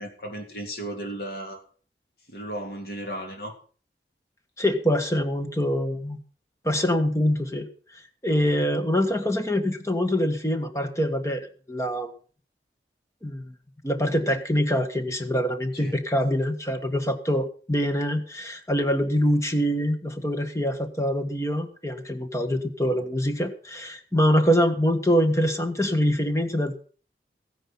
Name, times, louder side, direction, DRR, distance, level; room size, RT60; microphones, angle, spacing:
voice 1, 0.0-1.6 2.3-3.6 15.7-15.9, right 1 dB, 60° left, 3 dB, 3.2 m, -35 dB
voice 2, 4.6-6.2 6.6-12.1 13.2-13.5 13.8-26.7, equal, 15° left, 7 dB, 1.5 m, -24 dB
15.0 x 10.0 x 5.6 m, 0.41 s
head